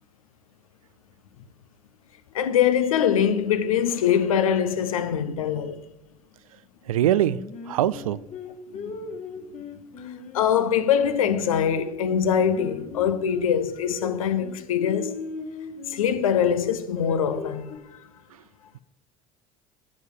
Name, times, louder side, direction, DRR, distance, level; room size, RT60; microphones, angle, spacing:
voice 1, 2.3-5.8 8.7-8.9 10.3-15.2 15.9-17.6 17.9-18.1, left 8 dB, 80° left, 0.7 m, -23 dB
voice 2, 6.9-7.4 7.7-8.2, right 12 dB, 85° right, 0.4 m, -22 dB
Singing, 7.0-11.7 12.1-16.1 16.6-17.8, left 5 dB, 40° left, 1.4 m, -38 dB
9.7 x 8.0 x 4.9 m
hypercardioid pair, 65°, 17 cm